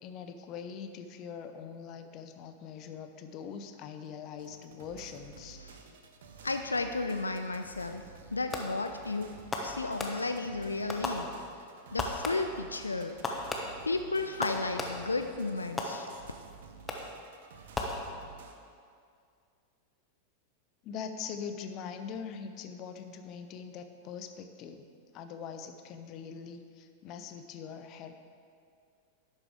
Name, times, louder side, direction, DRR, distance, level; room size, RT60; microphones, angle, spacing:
voice 1, 0.0-5.6 20.8-24.8 25.1-28.1, left 6 dB, 40° left, 8 dB, 0.6 m, -42 dB
sound 1, 4.4-18.6, right 6 dB, 60° right, 0.7 m, -52 dB
voice 2, 6.4-8.0 8.3-11.3 11.9-13.2 13.8-16.1, left 3 dB, 80° left, 7 dB, 0.3 m, -33 dB
Fireworks, 8.5-9.0 9.5-10.5 10.9-11.7 12.0-12.7 13.2-15.2 15.8-16.4 16.9-17.3 17.7-18.5, left 2 dB, 15° left, 1.0 m, -37 dB
11.0 x 8.1 x 3.6 m, 2.3 s
figure-of-eight pair, 90°, 0 cm